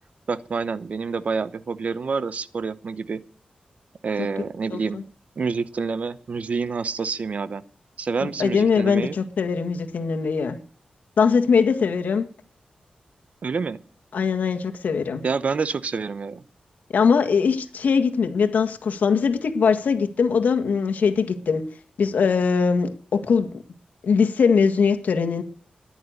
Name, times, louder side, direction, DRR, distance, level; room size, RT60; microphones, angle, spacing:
voice 1, 0.3-3.2 4.0-5.0 5.4-7.6 8.0-9.2 13.4-13.8 15.2-16.4, right 5 dB, 55° right, 0.9 m, -27 dB
voice 2, 4.7-5.0 8.2-10.6 11.2-12.2 14.1-15.2 16.9-21.6 22.0-23.5 24.0-25.4, left 5 dB, 85° left, 1.9 m, -21 dB
14.0 x 11.0 x 6.5 m
wide cardioid pair, 115°, 3 cm